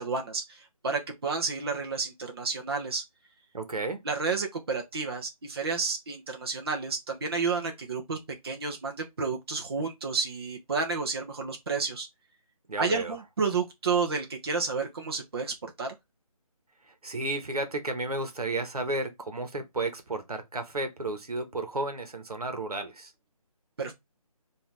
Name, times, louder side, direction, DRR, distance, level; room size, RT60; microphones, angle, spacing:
voice 1, 0.0-3.0 4.0-8.2 8.4-12.1 12.8-15.9 23.8-23.9, right 4 dB, 40° right, 1.0 m, -31 dB
voice 2, 3.5-4.0 12.7-13.2 16.9-23.1, right 2 dB, 75° right, 1.4 m, -33 dB
5.5 x 2.8 x 3.4 m
figure-of-eight pair, 165°, 19 cm